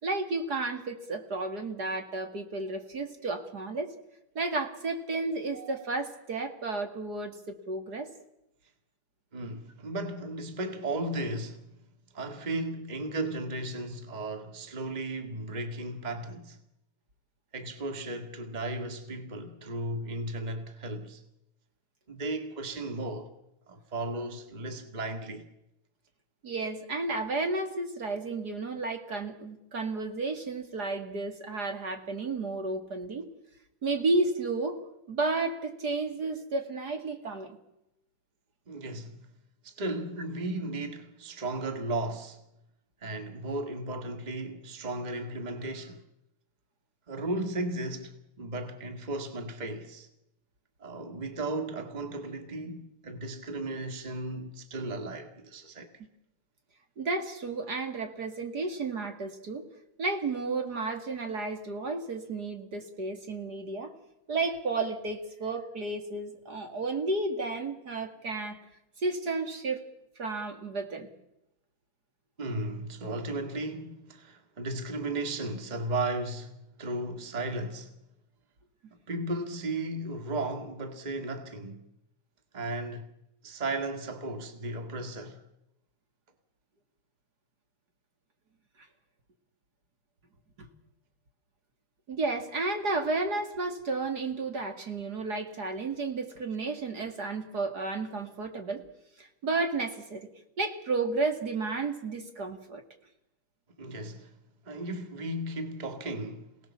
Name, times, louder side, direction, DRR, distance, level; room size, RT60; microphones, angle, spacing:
voice 1, 0.0-3.9 4.3-8.1 26.4-33.3 33.8-34.8 35.1-37.6 57.0-59.6 60.0-63.9 64.3-68.6 69.0-69.8 70.2-71.1 92.1-98.8 99.2-100.3 100.6-102.8, right 3 dB, 50° right, 2.7 m, -32 dB
voice 2, 9.3-11.7 12.1-16.6 17.5-21.2 22.1-23.3 23.7-25.5 38.7-39.3 39.6-42.4 43.0-46.0 47.1-50.1 50.8-55.9 72.4-78.0 79.1-81.8 82.5-83.1 83.4-85.4 103.8-104.3 104.6-106.5, right 2 dB, 20° right, 2.0 m, -35 dB
28.0 x 18.5 x 7.3 m
omnidirectional pair, 2.2 m